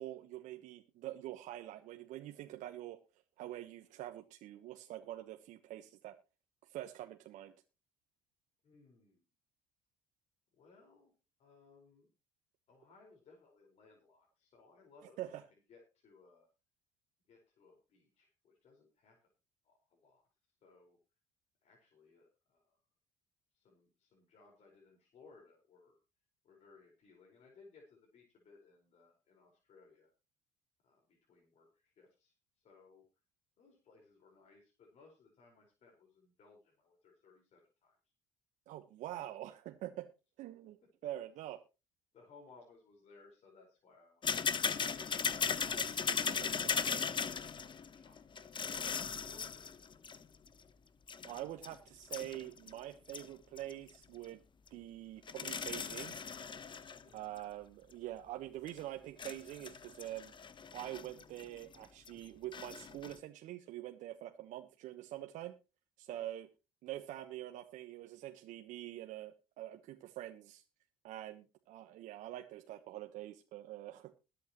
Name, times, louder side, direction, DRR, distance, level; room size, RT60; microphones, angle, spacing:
voice 1, 0.0-3.0 3.4-6.2 6.7-7.5 15.2-15.4 38.7-40.1 40.4-40.8 41.0-41.6 45.7-47.0 51.2-54.4 54.7-56.1 57.1-60.3 60.7-65.5 66.0-66.5 66.8-70.6 71.0-74.1, right 14 dB, 65° right, 5 dB, 1.3 m, -45 dB
voice 2, 8.6-9.3 10.5-11.1 11.4-12.1 12.7-15.4 15.7-16.5 17.3-19.2 19.6-20.3 20.6-21.0 21.6-22.8 23.5-26.0 26.4-30.1 30.8-33.0 33.6-38.0 42.1-45.2 47.2-48.2 48.4-49.8 56.9-57.2 66.1-66.3, left 4 dB, 55° left, 0 dB, 5.1 m, -63 dB
sound 1, 44.2-50.5 51.1-52.8 53.1-53.3 53.6-53.9 54.7-54.8 55.3-57.0 57.4-57.5 58.7-58.8 59.2-61.8 62.1-62.2 62.5-63.2, left 6 dB, 35° left, 1.2 m, -38 dB
21.5 x 8.5 x 3.1 m, 0.30 s
hypercardioid pair, 65°, 14 cm